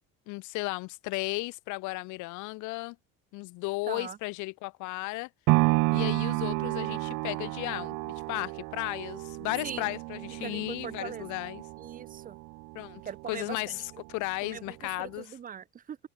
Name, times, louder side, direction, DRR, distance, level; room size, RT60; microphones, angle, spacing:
voice 1, 0.3-3.0 3.3-5.3 5.9-11.6 12.8-13.0 13.3-13.8 14.1-15.3, left 24 dB, 65° left, 1.8 m, -35 dB
voice 2, 3.9-4.2 9.6-9.9 10.4-11.3 11.8-12.4 13.0-13.8 14.4-16.0, right 8 dB, 25° right, 1.6 m, -41 dB
sound 1, 5.5-13.6 14.0-14.1, right 25 dB, 65° right, 1.4 m, -31 dB
cardioid pair, 165°, 32 cm